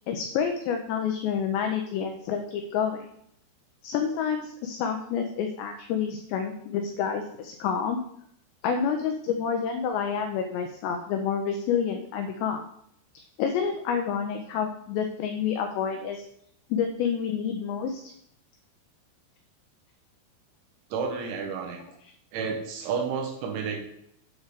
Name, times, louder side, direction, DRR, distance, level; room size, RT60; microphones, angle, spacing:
voice 1, 0.1-3.1 3.8-8.0 8.6-12.6 13.4-16.2 16.7-18.1, left 7 dB, 90° left, 5 dB, 2.5 m, -28 dB
voice 2, 20.9-21.8 22.3-23.8, right 5 dB, 75° right, 2 dB, 3.1 m, -30 dB
8.4 x 3.7 x 6.5 m, 0.72 s
omnidirectional pair, 5.9 m